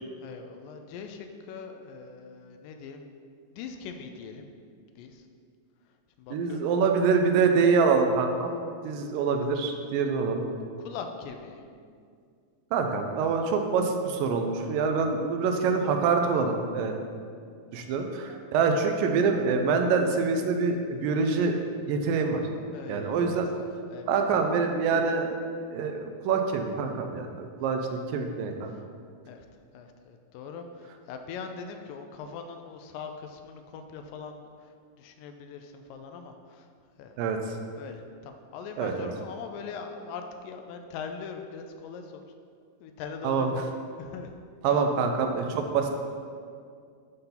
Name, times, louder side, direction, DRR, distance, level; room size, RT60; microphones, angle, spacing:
voice 1, 0.2-3.1 3.5-4.5 5.0-5.3 6.2-6.7 9.0-9.3 10.8-11.6 18.3-18.4 22.7-24.5 27.6-27.9 29.3-29.5 29.7-36.7 37.0-37.2 37.7-42.2 42.8-43.7 44.0-44.3 44.7-44.8, left 5 dB, 80° left, 5 dB, 2.2 m, -42 dB
voice 2, 6.3-10.5 12.7-17.0 17.7-21.6 21.8-22.4 22.9-23.5 24.1-25.4 25.7-28.7 37.2-37.4 38.8-39.1 43.2-43.5 44.6-45.9, right 5 dB, 80° right, 4 dB, 2.3 m, -25 dB
11.5 x 4.3 x 3.9 m, 2.2 s
omnidirectional pair, 4.0 m